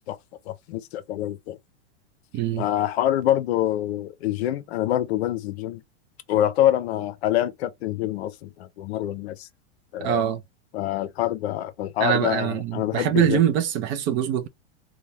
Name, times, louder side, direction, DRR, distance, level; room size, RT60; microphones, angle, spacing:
voice 1, 0.5-1.6 2.6-5.8 6.3-9.5 9.9-10.2 10.7-13.4, left 12 dB, 65° left, 0.6 m, -26 dB
voice 2, 2.3-2.6 10.0-10.4 12.0-14.5, right 10 dB, 35° right, 0.5 m, -23 dB
2.6 x 2.2 x 3.0 m
hypercardioid pair, 120°, 34 cm